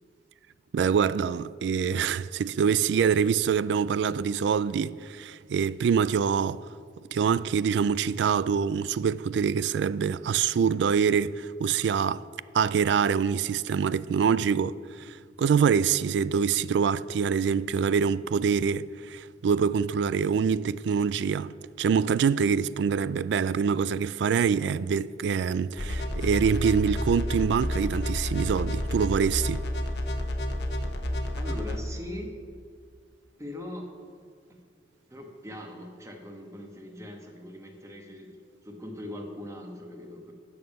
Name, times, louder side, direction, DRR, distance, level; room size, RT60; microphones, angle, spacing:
voice 1, 0.7-6.6 7.1-12.2 12.5-21.5 21.8-29.6, right 6 dB, 75° right, 0.3 m, -25 dB
sound 1, 25.8-31.8, left 1 dB, 70° left, 1.0 m, -30 dB
voice 2, 31.4-32.4 33.4-34.0 34.5-34.6 35.1-40.3, left 1 dB, 15° right, 1.2 m, -41 dB
12.5 x 7.3 x 5.3 m
head